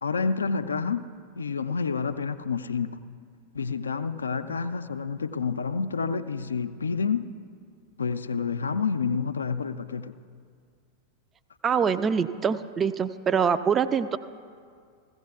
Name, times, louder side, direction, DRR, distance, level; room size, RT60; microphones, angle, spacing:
voice 1, 0.0-1.1 1.4-3.0 3.5-7.3 8.0-10.1, left 5 dB, 75° left, 10 dB, 0.4 m, -29 dB
voice 2, 11.6-14.2, right 6 dB, 20° right, 13 dB, 0.3 m, -24 dB
16.5 x 14.5 x 2.3 m, 2.2 s
figure-of-eight pair, 90°, 0 cm